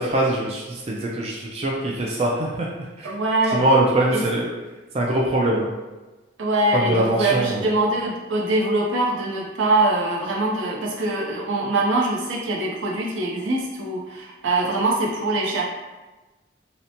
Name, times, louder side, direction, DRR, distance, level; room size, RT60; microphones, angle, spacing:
voice 1, 0.0-2.7 3.0-3.1 3.5-4.5 4.9-5.7 6.7-7.7, right 1 dB, 30° right, -3 dB, 0.3 m, -22 dB
voice 2, 3.0-3.6 4.1-4.2 6.4-15.6, right 2 dB, 80° right, -2 dB, 0.6 m, -23 dB
2.8 x 2.1 x 2.6 m, 1.2 s
head